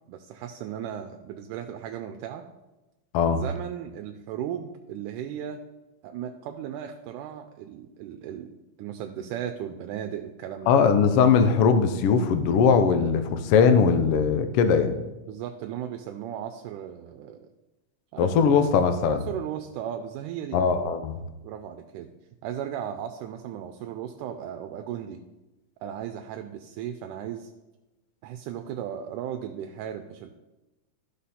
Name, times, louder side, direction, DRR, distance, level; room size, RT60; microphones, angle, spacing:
voice 1, 0.1-2.5 3.3-5.6 6.0-10.8 15.3-17.5 18.1-18.6 19.1-20.6 21.4-22.1 22.4-25.2 25.8-27.5 28.2-30.3, right 9 dB, 85° right, 6 dB, 2.1 m, -36 dB
voice 2, 10.7-15.0 18.2-19.2 20.5-21.2, left 6 dB, 85° left, 8 dB, 1.3 m, -20 dB
13.0 x 5.7 x 4.2 m, 1.1 s
omnidirectional pair, 3.6 m